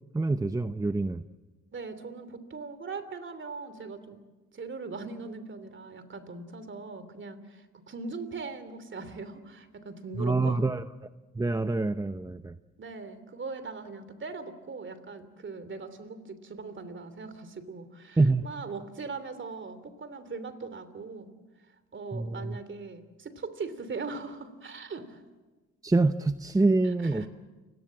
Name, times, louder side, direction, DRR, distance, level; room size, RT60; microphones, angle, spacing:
voice 1, 0.1-1.2 10.2-10.8 11.3-12.5 18.2-18.4 22.1-22.6 25.8-27.3, right 3 dB, 10° right, 10 dB, 0.7 m, -26 dB
voice 2, 1.7-4.2 4.5-10.6 12.8-21.3 21.9-25.2 26.8-27.3, right 4 dB, 40° right, 12 dB, 3.0 m, -40 dB
29.5 x 18.0 x 7.6 m, 1.3 s
cardioid pair, 90°, 30 cm